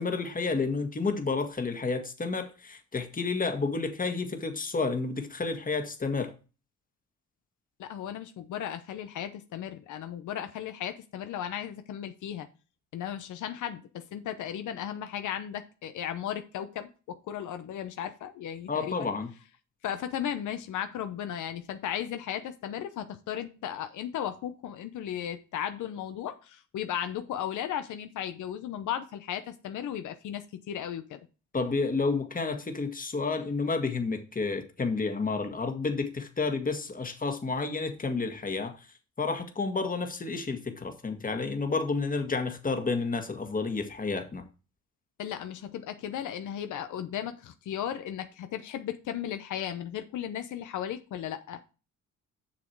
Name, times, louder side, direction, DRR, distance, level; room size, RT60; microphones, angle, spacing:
voice 1, 0.0-6.3 18.7-19.3 31.5-38.7 39.2-44.4, left 4 dB, 30° left, 1.8 m, -30 dB
voice 2, 7.8-12.5 12.9-19.1 19.8-31.2 45.2-51.6, left 10 dB, 75° left, 0.9 m, -35 dB
7.3 x 6.5 x 4.6 m
cardioid pair, 90°, 30 cm